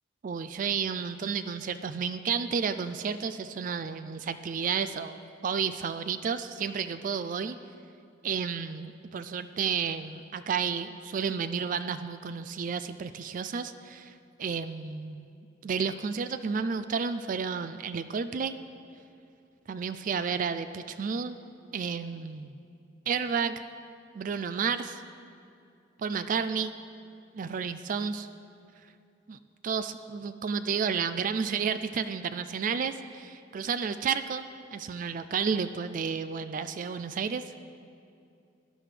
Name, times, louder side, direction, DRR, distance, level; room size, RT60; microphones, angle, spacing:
voice 1, 0.2-7.6 8.2-15.3 15.6-18.6 19.7-21.4 21.7-22.6 23.1-23.6 24.1-25.0 26.0-26.7 27.3-28.3 29.3-29.4 29.6-37.4, right 6 dB, 45° right, 11 dB, 0.3 m, -31 dB
17.0 x 11.0 x 3.3 m, 2.6 s
head